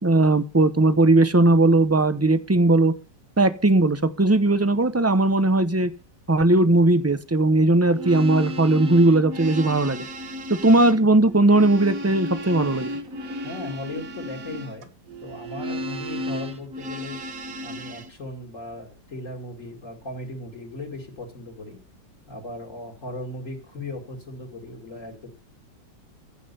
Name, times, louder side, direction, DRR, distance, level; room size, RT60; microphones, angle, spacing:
voice 1, 0.0-2.9 3.4-5.9 6.3-10.1 10.5-12.9, right 2 dB, 15° right, 12 dB, 0.5 m, -18 dB
sound 1, 7.8-18.1, equal, 55° right, 1.8 m, -34 dB
voice 2, 13.4-14.9 15.2-17.2 17.6-21.8 22.3-25.3, left 2 dB, 45° left, 1 dB, 2.6 m, -37 dB
15.5 x 5.6 x 6.8 m, 0.34 s
omnidirectional pair, 1.8 m